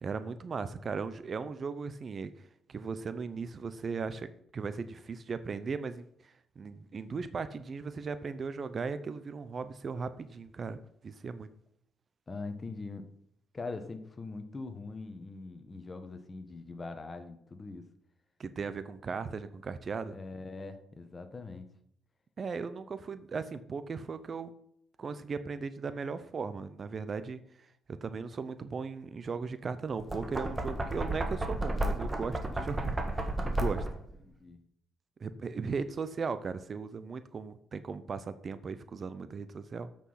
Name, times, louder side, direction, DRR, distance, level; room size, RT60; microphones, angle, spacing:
voice 1, 0.0-2.4 2.7-10.8 11.0-11.5 18.4-20.1 22.4-24.5 25.0-33.9 35.2-39.9, right 5 dB, 45° right, 13 dB, 0.6 m, -37 dB
voice 2, 12.3-13.1 13.5-17.9 20.1-21.7 34.2-34.6, left 3 dB, 30° left, 8 dB, 1.3 m, -42 dB
Knock, 29.9-34.1, right 1 dB, 20° right, 1.6 m, -33 dB
8.3 x 6.2 x 5.7 m, 0.71 s
cardioid pair, 90°, 0 cm